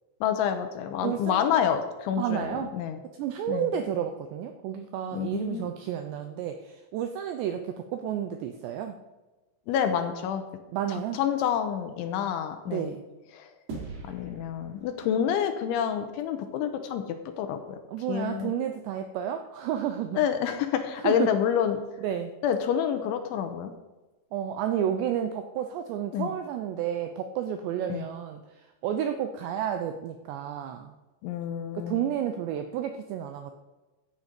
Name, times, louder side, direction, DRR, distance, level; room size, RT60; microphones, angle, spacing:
voice 1, 0.2-3.0 3.5-3.7 5.1-5.7 9.7-10.4 10.9-12.9 13.3-13.5 14.0-17.6 18.1-18.5 20.2-21.8 22.4-23.7 26.1-26.3 27.9-28.0 31.2-32.0, left 9 dB, 80° left, 7 dB, 3.1 m, -28 dB
voice 2, 1.0-1.6 2.2-2.7 3.2-9.0 10.7-11.2 12.7-13.0 17.9-20.2 21.0-21.3 22.0-22.3 24.3-30.9 31.7-33.5, right 9 dB, 85° right, 6 dB, 2.5 m, -31 dB
sound 1, 13.7-16.3, right 3 dB, 55° right, 4.2 m, -43 dB
14.5 x 9.3 x 5.2 m, 1.1 s
omnidirectional pair, 5.9 m